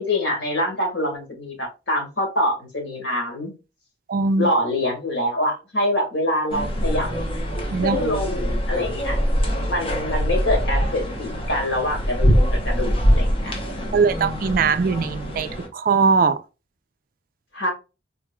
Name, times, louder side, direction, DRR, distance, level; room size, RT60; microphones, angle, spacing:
voice 1, 0.0-3.5 4.3-7.1 7.8-9.2 9.7-13.6 17.5-17.7, left 1 dB, 85° left, 1.5 m, -25 dB
voice 2, 4.1-4.5 7.7-8.0 13.9-16.4, right 4 dB, 50° right, 0.3 m, -20 dB
sound 1, 6.5-15.7, equal, 30° left, 0.8 m, -23 dB
3.6 x 3.0 x 2.2 m
head